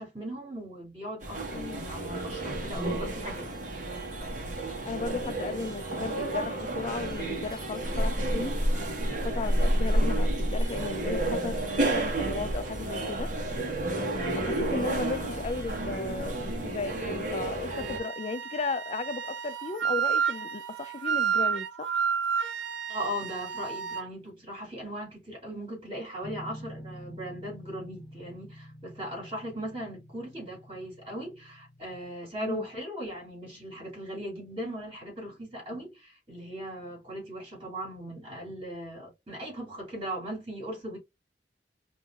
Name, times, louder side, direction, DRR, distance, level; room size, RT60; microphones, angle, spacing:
voice 1, 0.0-3.5 22.9-41.0, equal, 30° right, 2.9 m, -38 dB
sound 1, 1.2-18.0, right 1 dB, 45° right, 1.3 m, -30 dB
voice 2, 4.8-8.6 9.2-13.3 14.4-22.0 32.4-32.7, left 3 dB, 35° left, 0.4 m, -35 dB
Wind instrument woodwind instrument, 17.7-24.1, right 7 dB, 75° right, 0.5 m, -30 dB
sound 2, 26.2-31.8, equal, 15° left, 1.0 m, -47 dB
5.3 x 2.7 x 2.4 m
head